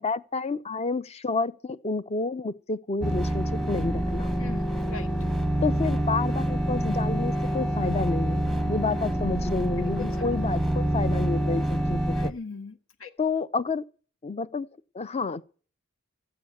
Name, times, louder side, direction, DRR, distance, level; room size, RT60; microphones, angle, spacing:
voice 1, 0.0-4.3 5.6-12.3 13.2-13.8 14.2-14.7 14.9-15.4, left 4 dB, 30° left, 0.6 m, -30 dB
sound 1, 3.0-12.3, right 1 dB, ahead, 0.8 m, -26 dB
voice 2, 4.4-5.1 9.8-10.1 12.2-13.1, left 4 dB, 80° left, 1.6 m, -40 dB
14.0 x 8.0 x 8.4 m
head